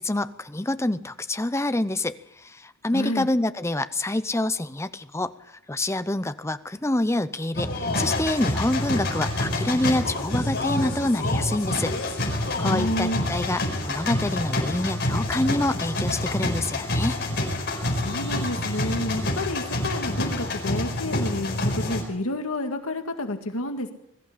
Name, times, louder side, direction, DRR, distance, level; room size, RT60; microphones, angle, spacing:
voice 1, 0.0-2.2 2.4-5.3 5.7-12.0 12.6-17.2, left 1 dB, 15° left, 13 dB, 0.7 m, -26 dB
voice 2, 2.9-3.3 12.6-13.2 18.0-23.9, left 1 dB, 80° left, 6 dB, 2.0 m, -30 dB
sound 1, 7.6-22.0, left 1 dB, 50° left, 4.8 m, -27 dB
21.5 x 14.0 x 8.6 m, 0.85 s
head